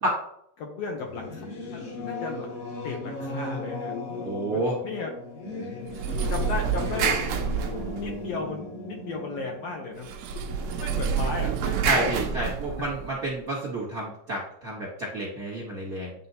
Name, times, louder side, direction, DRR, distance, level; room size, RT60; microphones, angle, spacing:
voice 1, 0.6-1.5 1.7-2.5 2.8-5.1 6.3-7.2 8.0-10.1 10.6-12.1 12.4-12.5 12.8-12.9, left 4 dB, 70° left, 1 dB, 1.7 m, -35 dB
Singing / Musical instrument, 1.0-11.1, left 3 dB, 55° left, 2.2 m, -37 dB
voice 2, 4.2-4.8 11.8-16.1, right 1 dB, 50° right, -5 dB, 1.0 m, -30 dB
sound 1, 5.9-8.4 10.0-13.2, right 6 dB, 85° right, 1.3 m, -28 dB
9.4 x 3.7 x 2.8 m, 0.69 s
omnidirectional pair, 3.6 m